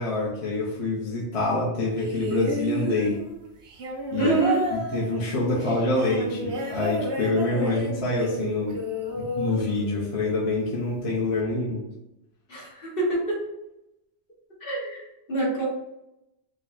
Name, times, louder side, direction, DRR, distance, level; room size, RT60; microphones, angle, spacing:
voice 1, 0.0-3.2 4.1-4.3 4.7-8.8 9.1-11.8, left 2 dB, 30° left, -6 dB, 1.0 m, -26 dB
sound 1, 2.0-10.4 11.4-11.5, right 1 dB, 65° right, 1.0 m, -31 dB
voice 2, 4.2-4.6 12.5-13.4 14.6-15.6, right 2 dB, 50° left, -5 dB, 1.6 m, -26 dB
5.1 x 2.4 x 4.1 m, 0.91 s
omnidirectional pair, 1.2 m